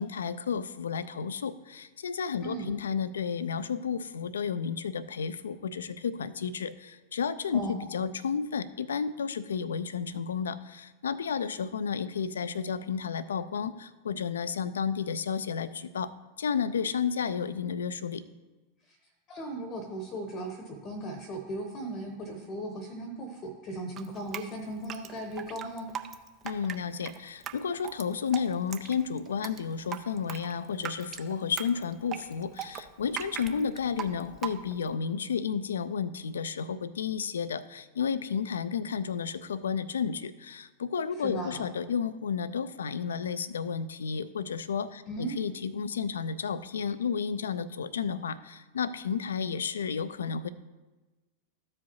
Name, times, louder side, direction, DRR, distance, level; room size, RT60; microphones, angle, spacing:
voice 1, 0.0-18.2 26.4-50.5, left 6 dB, 65° left, 17 dB, 0.4 m, -32 dB
voice 2, 7.5-7.8 18.8-19.0 19.3-25.9 41.2-41.7 45.1-45.4, right 1 dB, 30° left, 6 dB, 0.9 m, -37 dB
Drip, 24.0-34.9, right 9 dB, 30° right, 0.5 m, -40 dB
14.0 x 4.9 x 2.8 m, 1.2 s
figure-of-eight pair, 90°, 0 cm